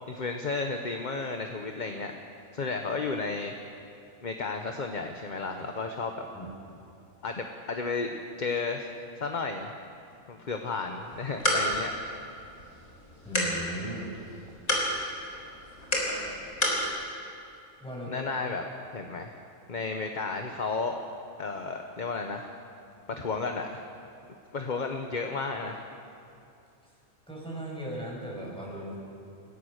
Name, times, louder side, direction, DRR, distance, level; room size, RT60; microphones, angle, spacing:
voice 1, 0.1-2.1 2.5-3.5 4.2-6.3 7.2-9.7 10.3-12.0 18.1-18.6 18.9-19.4 19.7-20.9 21.4-22.5 23.1-23.8 24.5-25.8, left 4 dB, 35° left, 4 dB, 1.1 m, -33 dB
sound 1, 11.0-16.9, equal, 80° left, 4.4 m, -31 dB
voice 2, 13.2-14.1 17.8-18.3 27.3-29.0, right 1 dB, 5° left, -4 dB, 6.3 m, -37 dB
28.5 x 16.5 x 6.6 m, 2.6 s
omnidirectional pair, 1.5 m